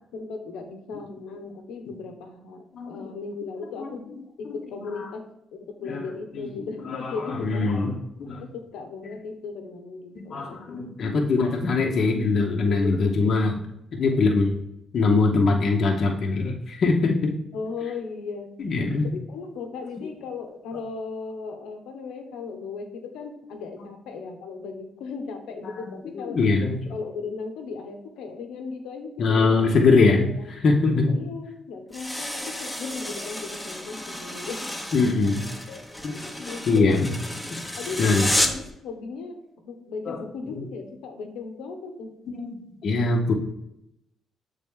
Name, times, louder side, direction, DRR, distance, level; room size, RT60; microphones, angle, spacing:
voice 1, 0.1-5.2 5.5-7.7 8.4-10.6 14.1-14.4 17.5-18.6 19.3-26.4 26.9-29.7 30.4-30.5 30.9-34.7 35.0-35.3 35.7-35.8 36.1-37.1 37.8-42.1, left 4 dB, 90° left, 4 dB, 0.9 m, -37 dB
voice 2, 2.7-3.1 3.8-3.9 5.8-6.1 6.4-6.5 6.9-7.9 8.2-8.4 10.1-13.6 13.9-14.5 14.9-17.3 18.6-19.1 26.2-26.8 29.2-31.2 34.9-35.4 36.0-36.2 36.7-37.1 38.0-38.3 40.1-40.2 42.3-43.3, left 3 dB, 55° left, 1 dB, 0.9 m, -22 dB
sound 1, 31.9-38.7, left 1 dB, 5° left, 0.8 m, -31 dB
6.9 x 3.7 x 3.6 m, 0.82 s
cardioid pair, 90°, 0 cm